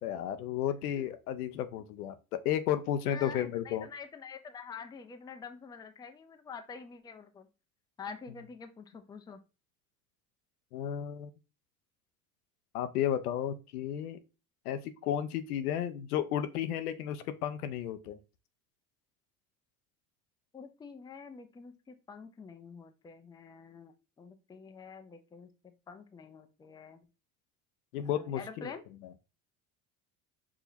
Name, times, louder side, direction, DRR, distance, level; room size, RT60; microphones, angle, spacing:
voice 1, 0.0-2.2 2.4-3.9 10.7-11.3 12.7-14.2 14.7-18.2 27.9-28.8, left 10 dB, 85° left, 0.6 m, -33 dB
voice 2, 3.1-7.5 8.0-9.4 20.5-27.0 28.0-28.8, left 5 dB, 10° left, 0.4 m, -47 dB
4.8 x 2.8 x 2.6 m
hypercardioid pair, 75°, 44 cm